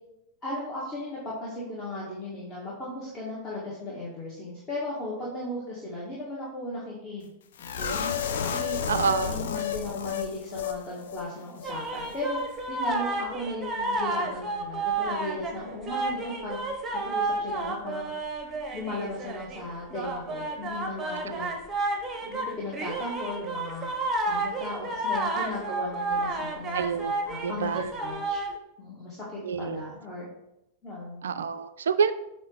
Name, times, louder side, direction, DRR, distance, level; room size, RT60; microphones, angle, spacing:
voice 1, 0.4-7.3 7.6-8.1 8.4-8.8 9.2-12.4 12.7-16.6 16.9-18.1 18.7-21.5 22.2-23.9 24.3-26.8 27.2-28.4 28.8-30.3 30.8-31.2, left 1 dB, 25° left, -7 dB, 1.9 m, -36 dB
sound 1, 7.6-10.8 11.1-11.2 11.6-11.7, left 8 dB, 60° left, 0.6 m, -31 dB
voice 2, 8.9-9.4 21.3-21.4 26.7-27.2 27.4-27.9 29.4-29.9 31.2-32.1, right 6 dB, 65° right, 12 dB, 0.3 m, -27 dB
sound 2, 11.6-15.6 15.9-19.6 19.9-28.6, right 2 dB, 15° right, 1.0 m, -31 dB
8.4 x 3.1 x 4.9 m, 0.85 s
figure-of-eight pair, 90°, 0 cm